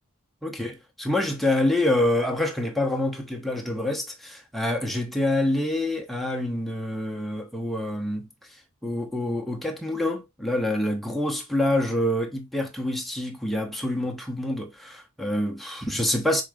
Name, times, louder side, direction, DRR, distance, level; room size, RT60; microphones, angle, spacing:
voice 1, 0.4-8.3 8.8-16.4, left 1 dB, ahead, 0.9 m, -26 dB
5.3 x 3.8 x 2.4 m
head